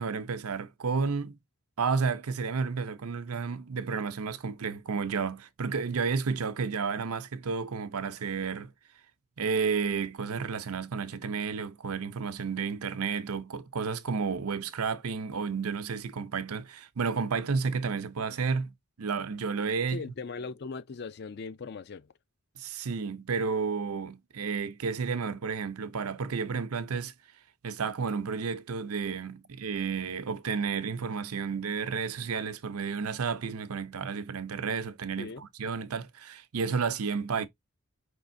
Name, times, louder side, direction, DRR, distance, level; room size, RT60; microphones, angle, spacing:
voice 1, 0.0-1.4 1.8-8.7 9.4-18.7 19.0-20.0 22.6-27.1 27.6-37.5, right 5 dB, 90° right, 0.6 m, -31 dB
voice 2, 19.9-22.1 35.2-35.5, left 4 dB, 50° left, 0.4 m, -39 dB
5.0 x 3.5 x 2.6 m
head